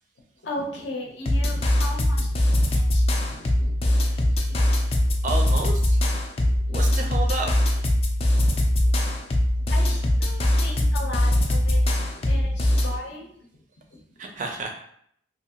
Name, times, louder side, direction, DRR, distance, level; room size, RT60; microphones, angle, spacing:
voice 1, 0.4-3.9 4.6-4.7 5.0-5.1 6.4-6.8 8.8-9.2 9.7-13.3 13.9-14.0, left 1 dB, 65° left, -1 dB, 0.6 m, -37 dB
sound 1, 1.3-13.0, left 1 dB, 30° left, 0.3 m, -22 dB
voice 2, 5.2-6.0 6.7-7.5 14.2-14.7, right 3 dB, 40° right, 3 dB, 0.4 m, -30 dB
2.7 x 2.4 x 2.8 m, 0.67 s
head